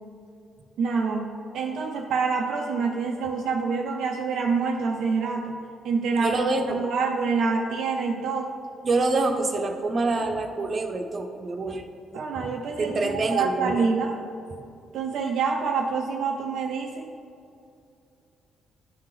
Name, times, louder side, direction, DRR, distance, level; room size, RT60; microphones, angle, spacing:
voice 1, 0.8-5.6 5.8-6.4 6.7-8.5 12.1-14.2 14.9-17.1, right 4 dB, 70° right, 1 dB, 0.5 m, -26 dB
voice 2, 6.1-6.8 8.8-11.8 12.8-13.8, right 3 dB, 45° right, 5 dB, 0.8 m, -26 dB
10.5 x 3.8 x 4.8 m, 2.5 s
hypercardioid pair, 50°, 0 cm